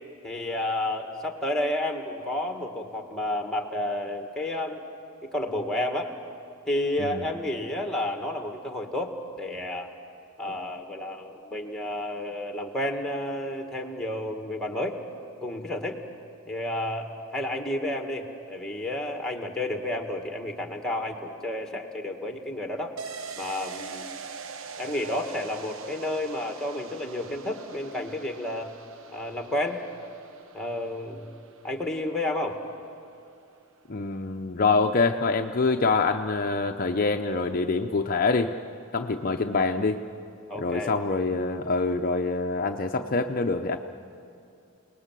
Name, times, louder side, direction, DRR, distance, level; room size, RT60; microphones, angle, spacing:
voice 1, 0.2-4.8 5.3-6.1 6.7-9.9 10.4-15.0 15.4-16.0 16.5-23.0 23.4-24.1 24.8-28.7 29.1-29.8 30.5-31.3 31.6-32.6 40.5-40.9, left 1 dB, ahead, 4 dB, 1.9 m, -31 dB
sound 1, 23.0-32.4 32.7-32.8, right 5 dB, 60° right, 0.9 m, -43 dB
voice 2, 33.9-38.5 38.9-40.0 40.6-43.8, left 3 dB, 40° left, 5 dB, 0.7 m, -25 dB
29.0 x 19.5 x 7.6 m, 2.7 s
head